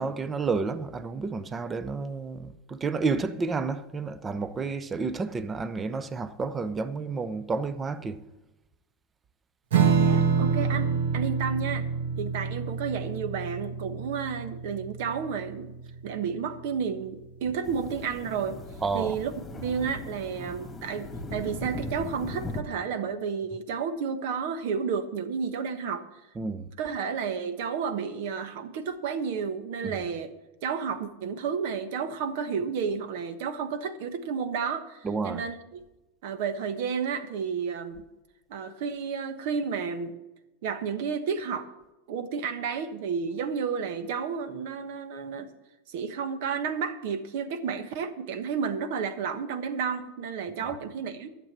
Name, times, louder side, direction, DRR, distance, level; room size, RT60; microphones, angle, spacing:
voice 1, 0.0-8.2 18.8-19.2 26.4-26.7 29.8-30.0 35.0-35.4 50.6-50.7, right 4 dB, 20° right, 0.7 m, -30 dB
Strum, 9.7-16.6, right 6 dB, 85° right, 1.4 m, -27 dB
voice 2, 10.0-11.9 12.2-15.7 16.0-18.6 18.9-26.0 26.8-30.3 30.6-35.8 36.2-38.0 38.5-40.1 40.6-41.7 42.1-45.5 45.9-51.3, right 6 dB, 65° right, 1.2 m, -31 dB
sound 1, 17.6-22.6, left 2 dB, 15° left, 2.1 m, -38 dB
11.5 x 7.5 x 7.4 m
hypercardioid pair, 115°, 0 cm